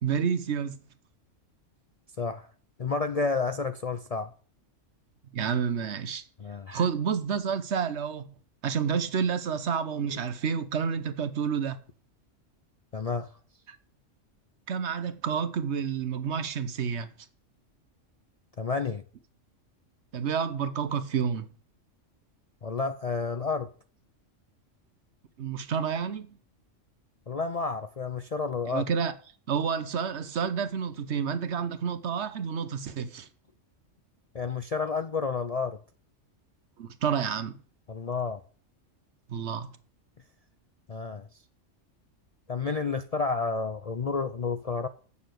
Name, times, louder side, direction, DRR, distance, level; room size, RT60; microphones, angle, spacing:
voice 1, 0.0-0.8 5.3-6.2 6.7-8.3 8.6-11.8 13.7-13.8 14.7-17.1 20.1-21.5 25.4-26.4 28.7-29.1 29.5-33.3 36.8-37.6 39.3-39.7, right 7 dB, 65° right, 1.1 m, -29 dB
voice 2, 2.2-2.5 2.8-4.3 6.4-6.8 10.0-10.2 12.9-13.3 18.6-19.0 22.6-23.7 27.3-28.8 34.3-35.8 37.9-38.4 40.9-41.3 42.5-44.9, left 4 dB, 45° left, 0.5 m, -30 dB
8.6 x 6.9 x 7.7 m
omnidirectional pair, 1.3 m